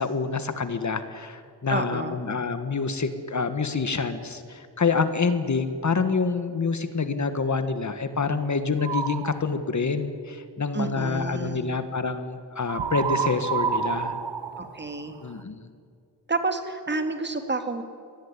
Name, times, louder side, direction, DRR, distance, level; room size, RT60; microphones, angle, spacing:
voice 1, 0.0-14.2 15.2-15.7, left 4 dB, 45° left, 10 dB, 1.6 m, -27 dB
voice 2, 1.7-2.2 10.7-11.7 14.6-15.1 16.3-17.8, right 3 dB, 25° right, 7 dB, 2.4 m, -29 dB
sound 1, 8.8-9.4 12.7-15.4, right 6 dB, 85° right, 1.5 m, -29 dB
24.5 x 19.0 x 9.8 m, 2.3 s
wide cardioid pair, 130°, 41 cm